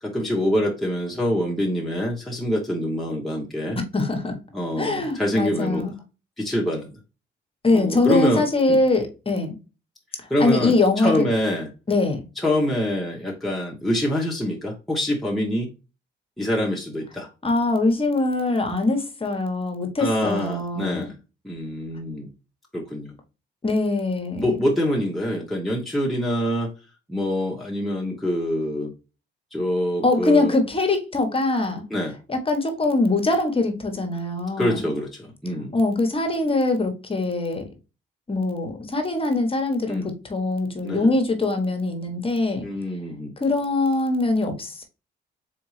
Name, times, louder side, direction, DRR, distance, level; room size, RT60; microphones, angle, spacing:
voice 1, 0.0-3.8 4.5-5.8 6.4-6.9 7.7-8.4 8.7-8.8 10.3-11.7 12.4-15.7 16.4-17.3 20.0-21.1 21.4-22.3 22.7-23.1 24.4-26.7 27.1-28.9 29.5-30.5 31.9-32.2 34.6-35.7 39.9-40.1 40.8-41.1 42.6-43.3, left 1 dB, ahead, 1.0 m, -25 dB
voice 2, 3.9-4.4 4.8-5.9 7.6-9.6 10.4-11.3 11.9-12.2 17.4-21.1 23.6-24.7 30.0-31.8 32.3-34.8 35.7-37.7 38.3-42.7 43.4-44.8, left 2 dB, 25° left, 1.1 m, -22 dB
3.9 x 3.5 x 3.1 m
cardioid pair, 90°, 20 cm